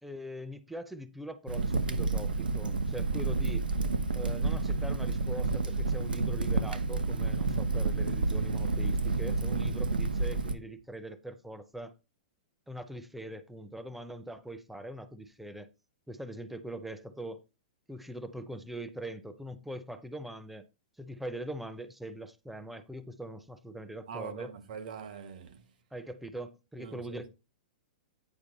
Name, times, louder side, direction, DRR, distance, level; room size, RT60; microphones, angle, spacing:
voice 1, 0.0-3.7 4.1-11.9 12.7-15.7 16.1-17.4 17.9-20.7 21.0-24.5 25.9-27.3, right 1 dB, 5° right, 0.6 m, -42 dB
Crackle, 1.5-10.5, right 3 dB, 90° right, 0.9 m, -30 dB
voice 2, 24.1-25.6 26.8-27.2, right 7 dB, 65° right, 1.5 m, -43 dB
8.9 x 4.7 x 4.1 m
hypercardioid pair, 115°, 5 cm